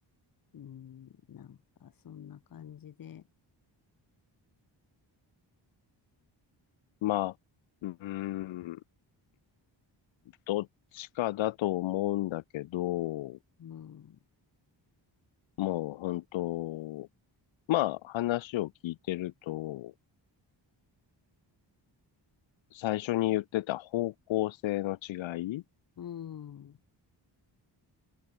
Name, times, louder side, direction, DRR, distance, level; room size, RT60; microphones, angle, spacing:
voice 1, 0.5-3.2 13.6-14.2 26.0-26.8, left 9 dB, 50° left, 0.9 m, -46 dB
voice 2, 7.0-7.3 7.8-8.8 10.5-10.7 10.9-13.4 15.6-17.1 17.7-19.9 22.7-25.6, left 15 dB, 80° left, 0.6 m, -32 dB
open air
cardioid pair, 85°, 46 cm